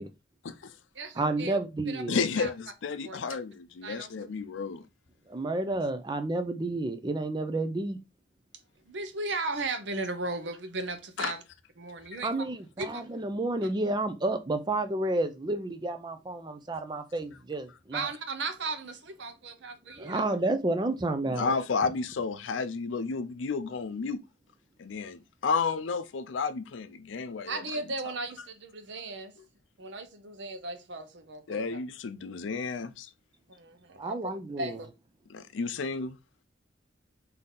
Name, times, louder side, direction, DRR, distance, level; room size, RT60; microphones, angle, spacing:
voice 1, 1.2-2.2 5.3-8.0 12.2-18.1 20.0-21.5 34.0-34.8, right 2 dB, 25° right, 0.5 m, -30 dB
voice 2, 2.1-4.8 11.2-11.3 21.2-24.2 24.8-27.8 28.1-28.2 31.5-33.1 35.3-36.2, left 5 dB, 85° left, 0.5 m, -32 dB
voice 3, 3.8-4.2 8.9-11.4 11.8-12.3 12.8-13.0 17.9-20.2 27.5-29.3 29.8-31.8 33.5-34.3 34.6-34.9, right 3 dB, 70° right, 0.8 m, -36 dB
3.9 x 2.8 x 3.6 m
head